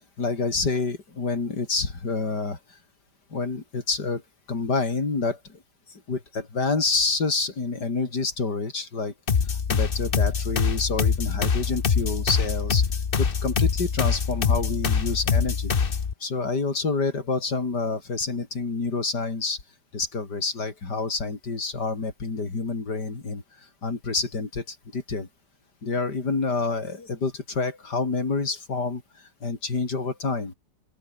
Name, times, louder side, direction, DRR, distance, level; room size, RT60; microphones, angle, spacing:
voice 1, 0.2-2.8 3.3-4.2 4.5-5.6 6.1-9.1 9.5-12.9 13.2-15.7 16.2-19.6 19.9-23.4 23.8-25.3 25.8-30.5, left 3 dB, 75° left, 4.4 m, -28 dB
sound 1, 9.3-16.1, left 6 dB, 35° left, 1.1 m, -24 dB
open air
omnidirectional pair, 1.8 m